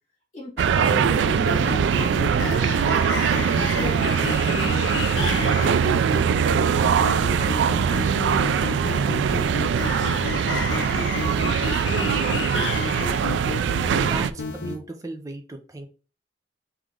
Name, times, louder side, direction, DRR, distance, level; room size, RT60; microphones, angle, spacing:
voice 1, 0.3-3.5 3.8-6.5 6.8-10.0, left 1 dB, 40° left, -4 dB, 1.8 m, -38 dB
sound 1, 0.6-14.8, left 3 dB, 90° left, 0.7 m, -30 dB
sound 2, 0.6-14.3, right 7 dB, 80° right, 0.3 m, -22 dB
voice 2, 13.9-15.9, right 2 dB, 20° right, 4 dB, 0.6 m, -36 dB
3.4 x 3.1 x 3.6 m, 0.36 s
head